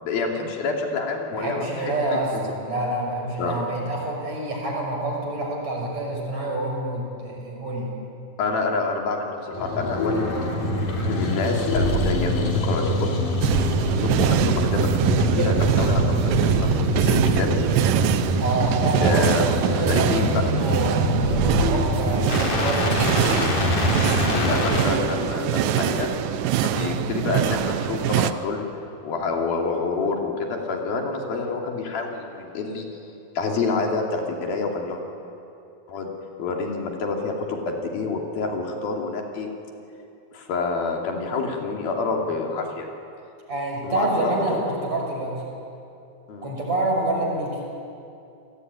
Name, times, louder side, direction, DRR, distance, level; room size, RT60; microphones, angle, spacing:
voice 1, 0.0-2.4 3.4-3.5 8.4-10.5 11.0-13.2 14.0-14.9 15.2-17.5 19.0-20.4 24.2-26.1 26.6-28.7 29.0-32.9 33.4-35.0 35.9-36.1 36.4-39.5 40.3-42.9 43.8-44.3 46.3-46.5, left 4 dB, 75° left, 1 dB, 4.6 m, -27 dB
voice 2, 1.3-7.9 18.4-23.2 26.7-27.0 43.5-45.4 46.4-47.6, right 2 dB, 45° right, 0 dB, 7.0 m, -27 dB
sound 1, 9.5-24.8, left 1 dB, 55° left, 5.4 m, -24 dB
sound 2, 13.4-28.3, right 12 dB, 75° right, 2.3 m, -24 dB
29.5 x 20.5 x 9.7 m, 2.6 s
omnidirectional pair, 4.3 m